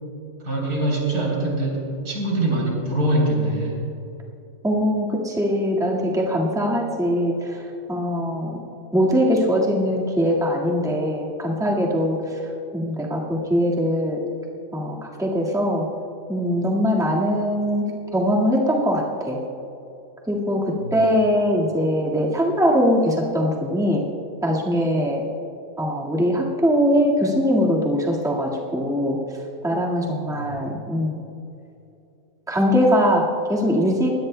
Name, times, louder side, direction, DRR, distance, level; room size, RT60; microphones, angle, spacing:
voice 1, 0.4-3.8 20.8-20.9 30.2-30.5, right 1 dB, 85° right, -3 dB, 4.1 m, -23 dB
voice 2, 4.6-7.6 7.9-8.6 8.9-12.4 12.7-14.2 14.7-15.9 16.3-17.9 18.1-19.4 20.3-24.0 24.4-25.2 25.8-29.2 29.6-31.3 32.5-34.1, equal, ahead, -3 dB, 1.6 m, -21 dB
22.0 x 17.5 x 2.2 m, 2.7 s
omnidirectional pair, 1.6 m